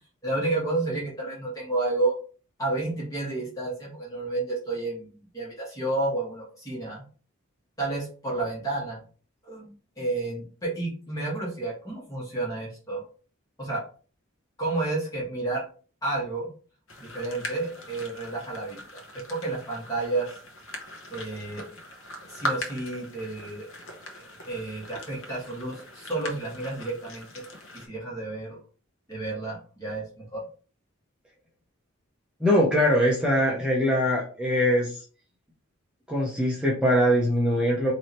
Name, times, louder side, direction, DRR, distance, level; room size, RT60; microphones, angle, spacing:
voice 1, 0.2-2.1 2.6-7.0 7.8-9.0 9.4-13.0 13.6-13.8 14.6-15.6 16.0-16.5 17.0-19.0 19.3-20.3 21.1-21.6 22.3-23.7 24.4-27.4 27.7-28.6 29.1-30.0 30.3-30.4, right 2 dB, 15° left, -5 dB, 1.6 m, -31 dB
sound 1, 16.9-27.9, equal, 70° left, 1.1 m, -40 dB
voice 2, 32.4-35.0 36.1-37.9, equal, 5° right, -4 dB, 0.7 m, -22 dB
4.8 x 2.9 x 3.0 m, 0.39 s
head